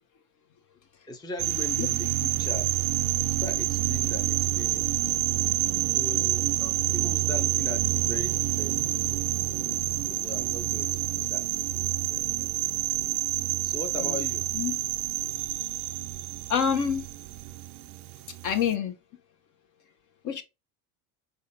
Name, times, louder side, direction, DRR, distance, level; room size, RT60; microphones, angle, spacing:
voice 1, 1.1-2.9 3.1-4.9 5.9-6.5 6.9-8.8 10.1-11.4 12.1-12.5 13.6-14.5, left 3 dB, 10° left, 0.6 m, -39 dB
sound 1, 1.4-18.7, right 16 dB, 75° right, 0.5 m, -28 dB
voice 2, 16.5-17.1 18.4-18.9 20.2-20.4, left 7 dB, 40° left, 0.9 m, -26 dB
4.4 x 3.6 x 2.7 m
supercardioid pair, 100°, 45 cm